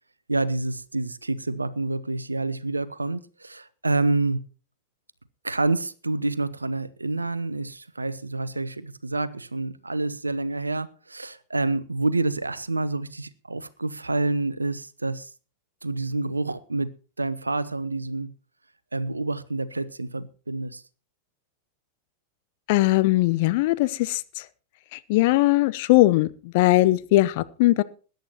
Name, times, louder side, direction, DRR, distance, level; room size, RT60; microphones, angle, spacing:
voice 1, 0.3-4.5 5.4-15.3 15.8-18.3 18.9-20.8, right 2 dB, 80° right, 0.8 m, -28 dB
voice 2, 22.7-24.2 24.9-27.8, left 18 dB, 50° left, 0.8 m, -20 dB
21.5 x 10.5 x 2.9 m
figure-of-eight pair, 90°, 0 cm